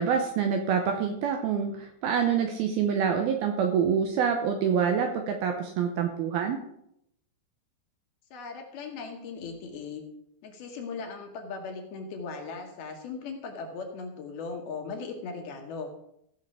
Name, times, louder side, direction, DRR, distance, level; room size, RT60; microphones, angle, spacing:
voice 1, 0.0-6.6, right 7 dB, 80° right, 4 dB, 2.3 m, -26 dB
voice 2, 8.3-10.0 10.4-15.9, left 4 dB, 70° left, 2 dB, 2.7 m, -38 dB
15.5 x 6.3 x 4.9 m, 0.77 s
omnidirectional pair, 5.2 m